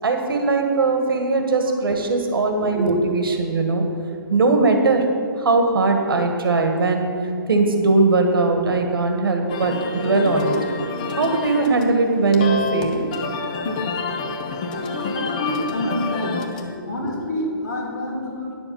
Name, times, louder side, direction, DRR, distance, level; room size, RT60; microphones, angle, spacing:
voice 1, 0.0-3.8 4.3-5.0 5.4-7.1 7.5-10.6 11.2-13.0 13.3-13.5 16.8-17.1, right 3 dB, 75° right, 4 dB, 1.6 m, -20 dB
sound 1, 9.5-16.7, left 3 dB, 20° left, 0.5 m, -28 dB
voice 2, 14.9-16.5 16.9-18.5, left 1 dB, 50° left, -2 dB, 2.5 m, -28 dB
10.0 x 7.0 x 5.6 m, 2.5 s
hypercardioid pair, 175°, 12 cm